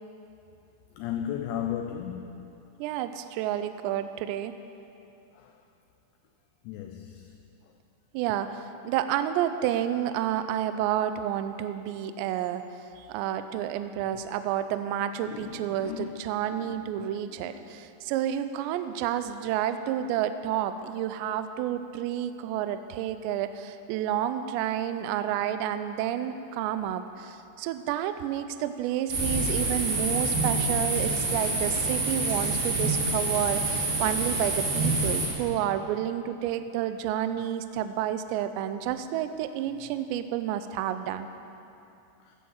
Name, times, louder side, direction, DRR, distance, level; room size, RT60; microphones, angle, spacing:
voice 1, 1.0-2.5 5.4-5.5 6.7-7.3 15.3-17.7 32.6-32.7, left 10 dB, 85° left, 4 dB, 2.5 m, -36 dB
voice 2, 2.8-4.5 8.1-12.6 13.0-41.3, right 11 dB, 90° right, 10 dB, 2.5 m, -30 dB
sound 1, 29.1-35.3, right 2 dB, 50° right, 4.4 m, -27 dB
14.5 x 8.4 x 7.1 m, 2.8 s
omnidirectional pair, 5.7 m